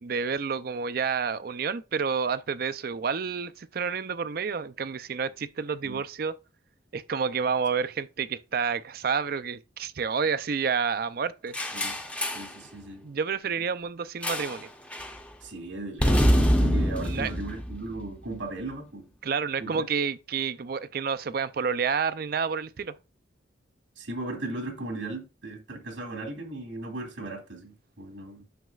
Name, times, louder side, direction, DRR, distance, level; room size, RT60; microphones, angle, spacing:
voice 1, 0.0-6.3 6.9-11.5 13.0-14.7 17.0-17.3 19.2-22.9, right 6 dB, 50° right, 0.4 m, -29 dB
sound 1, 11.5-12.6 14.2-14.6 14.9-15.2 16.0-18.3, equal, 5° left, 0.7 m, -25 dB
voice 2, 12.3-13.0 15.4-19.1 19.6-19.9 24.0-28.4, right 2 dB, 85° right, 2.2 m, -37 dB
9.2 x 6.5 x 2.4 m
head